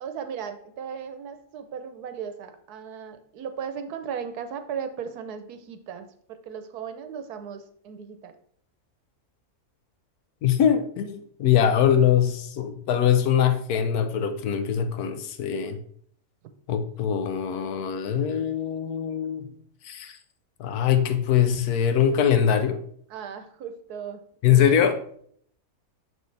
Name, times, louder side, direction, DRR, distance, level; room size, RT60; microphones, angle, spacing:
voice 1, 0.0-8.3 23.1-24.9, right 7 dB, 80° right, 9 dB, 1.3 m, -37 dB
voice 2, 10.4-15.8 16.7-19.5 19.8-20.2 20.6-22.8 24.4-25.0, left 9 dB, 80° left, 8 dB, 1.2 m, -22 dB
6.6 x 6.3 x 3.3 m, 0.62 s
omnidirectional pair, 1.6 m